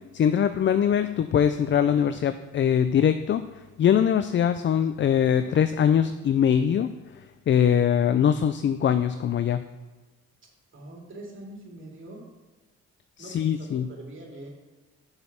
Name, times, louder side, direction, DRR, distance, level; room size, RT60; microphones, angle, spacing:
voice 1, 0.1-3.4 3.8-6.9 7.5-9.6 13.2-13.9, left 8 dB, 40° left, 11 dB, 0.4 m, -22 dB
voice 2, 10.7-12.2 13.2-14.5, right 1 dB, 40° right, -2 dB, 3.0 m, -43 dB
6.0 x 5.5 x 7.0 m, 1.3 s
cardioid pair, 90°, 30 cm